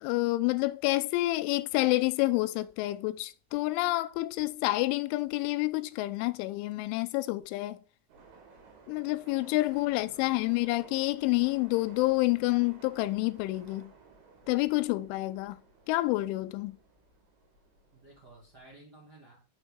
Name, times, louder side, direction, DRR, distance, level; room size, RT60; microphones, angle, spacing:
voice 1, 0.0-7.8 8.9-13.9 14.5-15.6 15.9-16.7, left 20 dB, 85° left, 2.9 m, -28 dB
sound 1, 8.1-18.7, right 4 dB, 75° right, 4.1 m, -56 dB
voice 2, 9.9-10.4 17.9-19.4, right 2 dB, 55° right, 1.1 m, -55 dB
6.6 x 6.1 x 3.6 m
omnidirectional pair, 5.7 m